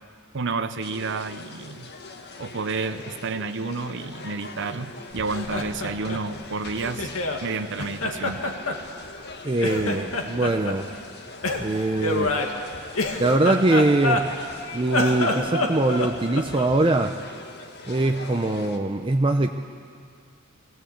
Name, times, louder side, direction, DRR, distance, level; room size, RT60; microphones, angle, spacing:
voice 1, 0.3-1.9 2.4-7.1 7.4-8.4, right 4 dB, 60° right, 10 dB, 0.7 m, -30 dB
sound 1, 0.8-18.8, left 3 dB, 55° left, 1.4 m, -42 dB
Laughter, 5.2-7.4 7.8-9.3 9.6-10.8 11.4-14.5 14.8-16.8, left 2 dB, 90° left, 2.0 m, -27 dB
voice 2, 9.4-10.9 11.5-12.3 13.2-14.3 14.7-17.1 17.9-19.5, right 2 dB, 25° right, 5 dB, 0.6 m, -22 dB
22.5 x 17.0 x 8.7 m, 2.2 s
head